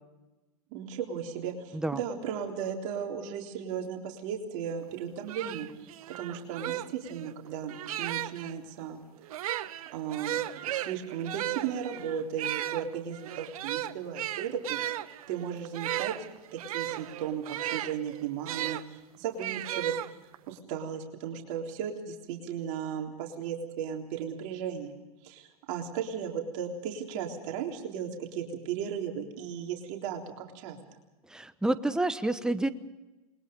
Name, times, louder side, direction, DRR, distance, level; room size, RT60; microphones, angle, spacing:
voice 1, 0.7-9.0 9.9-14.8 15.3-16.1 16.5-19.9 20.5-25.0 25.2-30.8, right 8 dB, 55° right, 1 dB, 3.6 m, -36 dB
sound 1, 4.9-5.0 5.3-8.5 9.2-18.8 19.4-20.5, right 13 dB, 70° right, 1.0 m, -35 dB
voice 2, 31.3-32.7, right 2 dB, 5° right, 11 dB, 1.1 m, -28 dB
28.0 x 21.5 x 5.3 m, 1.1 s
hypercardioid pair, 120°, 19 cm